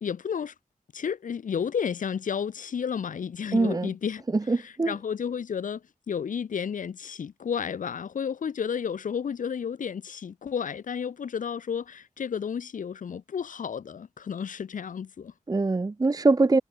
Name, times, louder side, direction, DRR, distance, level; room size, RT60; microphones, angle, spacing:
voice 1, 0.0-0.5 0.9-4.2 4.5-5.8 6.1-15.3, left 7 dB, 75° left, 0.6 m, -32 dB
voice 2, 3.5-3.9 4.3-4.9 15.5-16.6, right 3 dB, 30° right, 0.7 m, -23 dB
wide cardioid pair, 105°, 14 cm